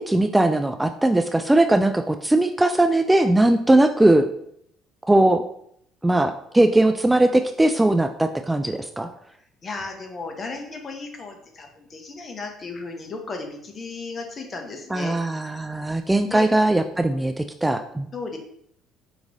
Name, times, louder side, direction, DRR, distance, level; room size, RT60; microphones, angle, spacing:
voice 1, 0.0-4.3 5.1-5.4 6.0-9.1 14.9-18.1, right 1 dB, 10° right, 7 dB, 0.3 m, -19 dB
voice 2, 9.6-15.2 16.3-16.5 18.1-18.4, left 3 dB, 40° left, 3 dB, 1.0 m, -35 dB
5.0 x 3.0 x 2.6 m, 0.70 s
hypercardioid pair, 65°, 0 cm